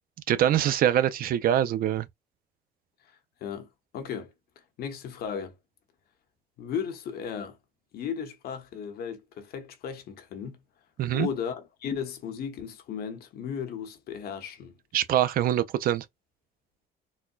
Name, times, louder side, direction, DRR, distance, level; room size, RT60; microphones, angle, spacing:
voice 1, 0.3-2.1 11.0-11.3 14.9-16.0, right 11 dB, 60° right, 0.5 m, -24 dB
voice 2, 3.9-4.3 4.8-5.5 6.6-7.6 7.9-10.6 11.1-14.7, left 7 dB, 65° left, 1.0 m, -35 dB
4.1 x 2.2 x 2.4 m
cardioid pair, 110°, 17 cm